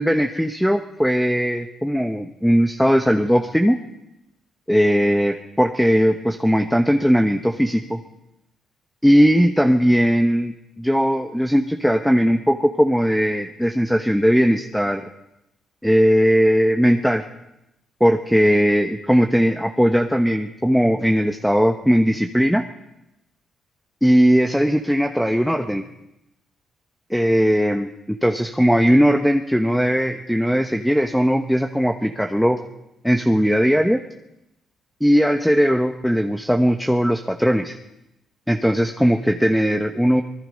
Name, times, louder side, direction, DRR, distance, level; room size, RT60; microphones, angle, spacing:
voice 1, 0.0-3.8 4.7-8.0 9.0-15.0 15.8-17.2 18.0-22.6 24.0-25.8 27.1-32.6 33.0-34.0 35.0-37.8 38.5-40.2, equal, ahead, 5 dB, 1.3 m, -18 dB
26.0 x 20.5 x 5.4 m, 0.89 s
cardioid pair, 90°, 0 cm